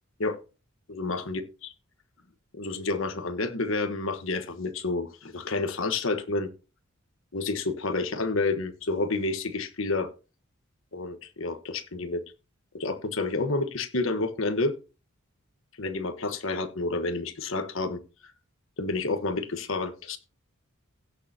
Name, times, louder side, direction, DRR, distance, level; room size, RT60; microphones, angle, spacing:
voice 1, 0.9-1.7 2.6-6.5 7.3-10.1 10.9-12.2 12.7-14.7 15.8-18.0 18.8-20.2, left 3 dB, 70° left, 7 dB, 1.3 m, -29 dB
17.0 x 6.6 x 2.9 m, 0.31 s
head